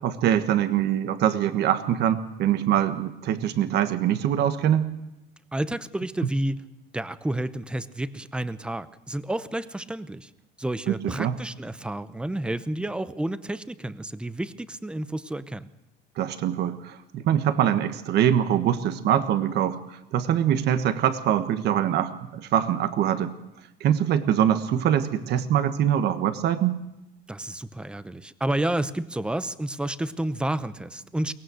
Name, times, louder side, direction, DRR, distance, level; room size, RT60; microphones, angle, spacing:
voice 1, 0.0-4.9 6.2-6.3 10.9-11.4 16.2-23.3 23.8-26.8, right 10 dB, 55° right, 10 dB, 1.5 m, -23 dB
voice 2, 5.5-6.6 6.9-10.3 10.6-15.7 27.3-31.3, right 1 dB, 5° right, 14 dB, 0.7 m, -30 dB
23.0 x 18.0 x 6.4 m, 0.92 s
cardioid pair, 130°, 20 cm